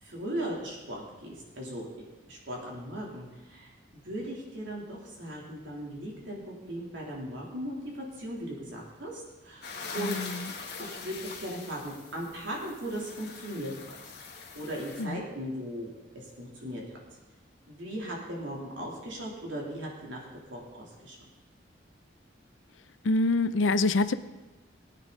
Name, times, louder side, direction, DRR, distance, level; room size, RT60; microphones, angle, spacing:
voice 1, 0.0-10.2 10.8-14.0 14.5-16.8 17.7-21.2, right 1 dB, 75° right, -3 dB, 3.4 m, -38 dB
sound 1, 9.6-15.0, left 4 dB, 55° left, 1.9 m, -42 dB
voice 2, 10.0-10.4 15.0-15.2 23.0-24.2, left 2 dB, 80° left, 13 dB, 0.6 m, -26 dB
18.5 x 9.3 x 4.1 m, 1.1 s
head